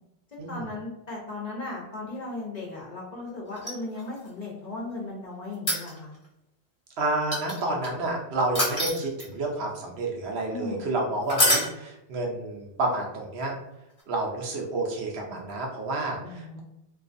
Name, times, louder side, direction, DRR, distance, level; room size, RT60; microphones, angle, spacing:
voice 1, 0.3-6.2 10.5-10.8 16.2-16.6, left 2 dB, 50° left, -3 dB, 0.6 m, -36 dB
sound 1, 3.6-4.3 5.5-6.2 7.3-7.9 8.5-9.5 11.3-11.7 14.0-14.1, equal, 35° left, 0.9 m, -25 dB
voice 2, 7.0-13.5 14.1-16.6, right 2 dB, 70° right, -1 dB, 0.9 m, -30 dB
2.4 x 2.3 x 2.5 m, 0.89 s
omnidirectional pair, 1.1 m